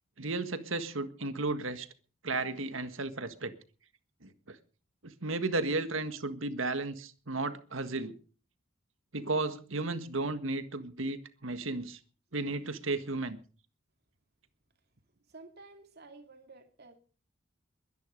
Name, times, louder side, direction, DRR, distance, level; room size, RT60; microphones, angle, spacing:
voice 1, 0.2-1.9 2.2-3.5 4.2-4.6 5.0-8.1 9.1-12.0 12.3-13.4, right 2 dB, 70° right, 1.6 m, -34 dB
voice 2, 15.3-17.0, right 3 dB, 50° right, 2.8 m, -52 dB
22.0 x 10.5 x 5.2 m
head